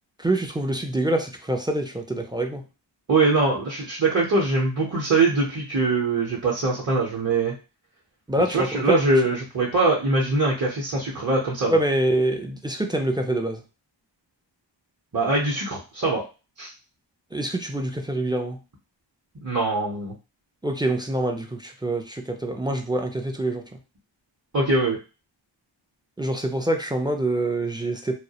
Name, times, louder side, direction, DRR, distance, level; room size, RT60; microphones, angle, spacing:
voice 1, 0.2-2.6 8.3-9.0 11.7-13.6 17.3-18.6 20.6-23.8 26.2-28.2, right 1 dB, 10° right, 3 dB, 0.3 m, -25 dB
voice 2, 3.1-7.5 8.5-11.8 15.1-16.3 16.6-16.7 19.4-20.1 24.5-25.0, right 3 dB, 40° right, -5 dB, 0.7 m, -22 dB
2.3 x 2.0 x 2.8 m, 0.31 s
wide cardioid pair, 40°, 46 cm